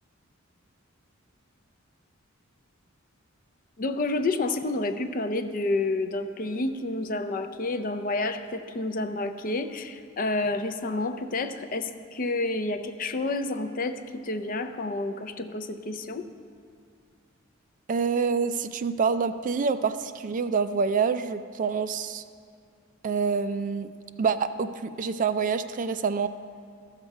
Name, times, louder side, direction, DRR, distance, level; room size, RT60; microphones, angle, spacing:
voice 1, 3.8-16.3, left 2 dB, 40° left, 9 dB, 0.5 m, -29 dB
voice 2, 17.9-22.2 23.0-23.9 24.2-26.3, right 5 dB, 40° right, 11 dB, 0.3 m, -26 dB
14.0 x 6.6 x 4.7 m, 2.4 s
head